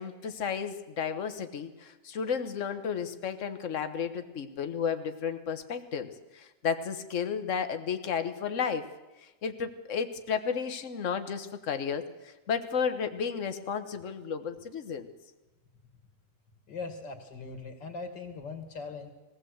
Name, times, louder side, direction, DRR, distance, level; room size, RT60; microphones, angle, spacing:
voice 1, 0.0-8.9 9.2-15.1, left 6 dB, 45° left, 9 dB, 1.5 m, -33 dB
voice 2, 16.7-19.1, left 4 dB, 70° left, 6 dB, 2.9 m, -40 dB
21.5 x 16.5 x 7.9 m, 1.1 s
omnidirectional pair, 2.0 m